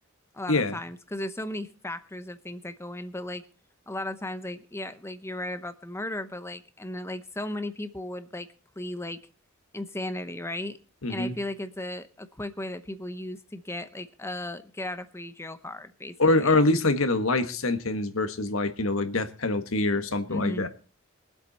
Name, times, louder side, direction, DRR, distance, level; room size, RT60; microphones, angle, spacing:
voice 1, 0.3-3.4 3.9-8.5 8.8-9.2 9.7-10.8 11.1-16.6 20.3-20.7, left 1 dB, 15° left, 0.8 m, -36 dB
voice 2, 11.0-11.3 16.2-20.7, left 2 dB, 80° left, 1.6 m, -25 dB
22.5 x 8.1 x 4.2 m
head